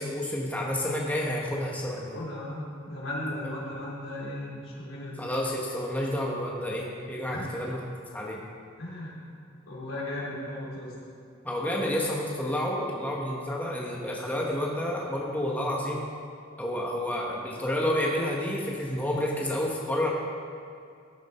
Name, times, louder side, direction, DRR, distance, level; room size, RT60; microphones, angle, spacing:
voice 1, 0.0-2.2 5.2-7.8 8.1-8.4 11.4-16.0 16.6-20.1, left 1 dB, 10° left, -3 dB, 1.4 m, -30 dB
voice 2, 2.1-5.3 7.3-7.5 8.8-9.1 9.7-10.9, left 1 dB, 75° left, -5 dB, 3.8 m, -36 dB
15.5 x 10.5 x 4.4 m, 2.5 s
head